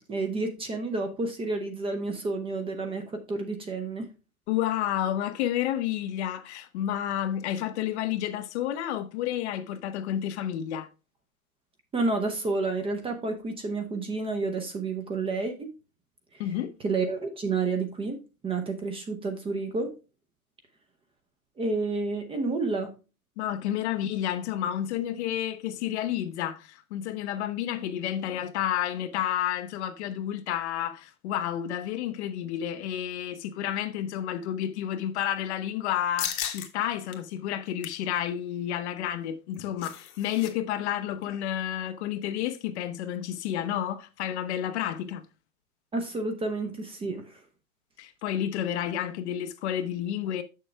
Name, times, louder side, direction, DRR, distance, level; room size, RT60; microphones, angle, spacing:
voice 1, 0.1-4.1 11.9-15.7 16.3-16.4 16.8-18.2 18.4-19.9 21.6-22.9 45.9-47.4, right 3 dB, 15° right, 0.7 m, -30 dB
voice 2, 4.5-10.9 16.4-16.7 23.4-45.3 48.0-50.4, left 11 dB, 50° left, 0.8 m, -30 dB
sound 1, 36.2-36.7 37.1-37.2 37.6-38.0 39.3-40.5 40.8-40.9 41.2-41.5, left 9 dB, 75° left, 1.4 m, -35 dB
6.6 x 6.4 x 3.3 m
hypercardioid pair, 125°, 43 cm